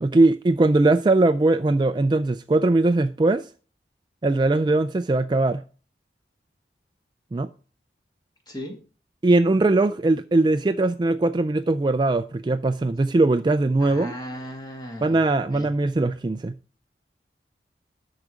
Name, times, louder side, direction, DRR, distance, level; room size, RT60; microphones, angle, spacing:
voice 1, 0.0-3.5 4.2-5.6 7.3-7.5 9.2-14.1 15.0-16.5, right 2 dB, 25° right, 0.3 m, -20 dB
voice 2, 8.5-8.8 13.8-15.2 15.5-15.7, equal, 25° left, 2.3 m, -36 dB
13.0 x 4.9 x 4.9 m
head